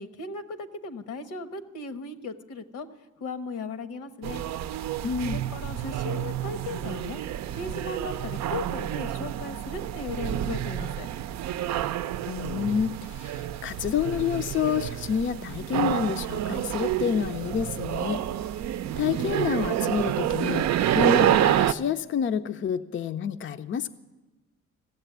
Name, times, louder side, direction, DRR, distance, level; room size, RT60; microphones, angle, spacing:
voice 1, 0.0-2.9 3.2-4.4 5.2-7.2 7.5-11.1, left 3 dB, 80° left, 9 dB, 1.1 m, -37 dB
sound 1, 4.2-21.7, right 11 dB, 65° right, 0.5 m, -28 dB
voice 2, 5.0-5.4 12.3-18.3 19.0-23.9, left 8 dB, 40° left, 8 dB, 0.5 m, -29 dB
15.5 x 7.5 x 9.2 m, 1.1 s
cardioid pair, 90°, 30 cm